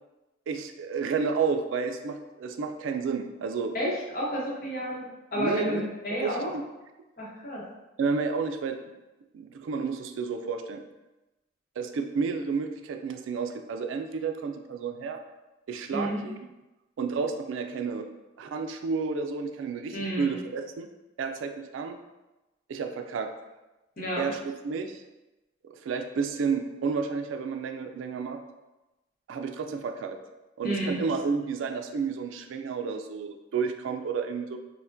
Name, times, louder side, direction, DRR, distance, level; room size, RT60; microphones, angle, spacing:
voice 1, 0.5-3.7 5.4-5.8 6.2-6.6 8.0-8.8 9.3-10.8 11.8-15.2 15.7-16.4 17.0-18.1 18.4-20.9 21.2-22.0 22.7-23.3 24.2-25.0 25.8-28.4 29.3-30.2 30.6-34.6, right 5 dB, 85° right, 6 dB, 0.3 m, -31 dB
voice 2, 3.7-6.5 7.2-7.6 15.9-16.2 19.9-20.4 24.0-24.2 30.6-31.0, equal, 45° left, -4 dB, 0.8 m, -31 dB
4.4 x 2.1 x 2.5 m, 1.0 s
head